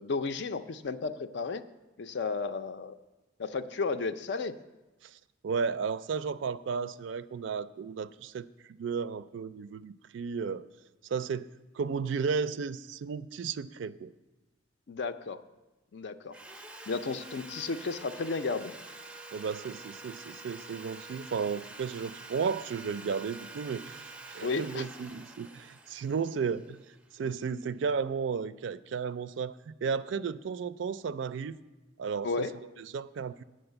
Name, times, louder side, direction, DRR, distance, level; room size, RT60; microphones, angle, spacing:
voice 1, 0.0-1.6 2.0-2.9 3.4-4.6 14.9-15.4 15.9-16.3 16.9-18.7 24.4-24.9 32.2-32.6, left 4 dB, 60° left, 11 dB, 0.5 m, -33 dB
voice 2, 5.4-8.5 8.8-10.7 11.1-11.5 11.7-14.1 19.3-26.8 27.1-31.6 32.0-32.5 32.8-33.4, right 5 dB, 70° right, 15 dB, 0.4 m, -34 dB
Sawing, 16.3-27.4, right 2 dB, 5° right, 0.5 m, -47 dB
8.8 x 6.4 x 7.9 m, 1.1 s
head